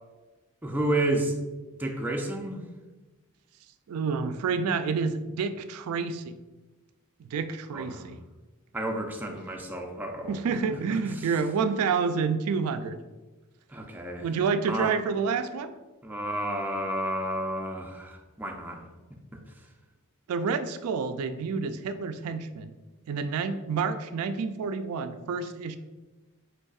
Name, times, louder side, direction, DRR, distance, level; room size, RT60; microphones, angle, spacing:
voice 1, 0.6-1.4 1.8-2.6 7.7-8.1 8.7-10.4 10.7-11.3 13.7-14.3 14.7-14.9 16.0-18.8 19.3-19.4, right 1 dB, 10° right, 1 dB, 0.4 m, -31 dB
voice 2, 3.9-6.3 7.3-8.2 10.2-13.0 14.2-15.7 20.3-22.7 23.1-25.8, right 5 dB, 85° right, 10 dB, 0.3 m, -29 dB
5.3 x 3.8 x 2.4 m, 1.2 s
head